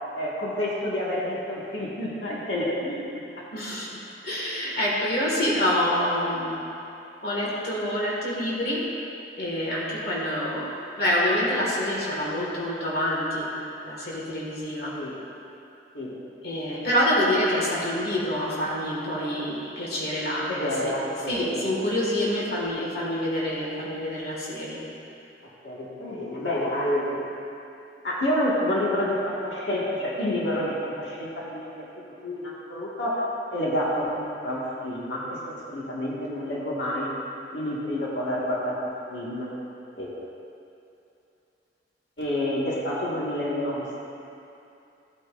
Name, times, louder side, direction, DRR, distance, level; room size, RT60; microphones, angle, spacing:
voice 1, 0.1-3.2 15.0-15.2 15.9-16.1 20.4-21.7 25.6-27.1 28.0-31.7 32.2-33.2 33.5-37.1 37.5-38.7 39.1-39.5 40.0-40.1 42.2-44.0, left 1 dB, 85° left, -6 dB, 1.8 m, -28 dB
voice 2, 3.5-3.9 4.2-6.7 7.2-8.9 9.4-13.5 13.8-15.0 16.4-20.9 21.3-24.8, left 1 dB, 60° left, -5 dB, 1.8 m, -27 dB
15.5 x 8.5 x 2.5 m, 2.7 s
head